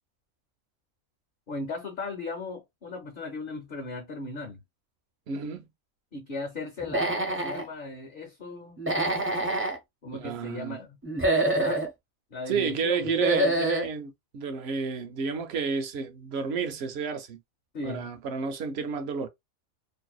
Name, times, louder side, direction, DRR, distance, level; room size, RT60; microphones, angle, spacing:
voice 1, 1.5-4.6 6.1-8.8 10.0-11.0 11.6-11.8 12.3-13.1 17.7-18.1, left 3 dB, 50° left, 0.7 m, -37 dB
voice 2, 5.3-5.7 10.1-10.8 12.5-17.4 17.8-19.3, right 5 dB, 65° right, 0.7 m, -31 dB
Human voice / Animal, 6.8-7.6 8.8-9.8 11.0-11.9 13.0-13.9, right 2 dB, 20° right, 0.3 m, -26 dB
2.6 x 2.1 x 2.3 m
omnidirectional pair, 1.4 m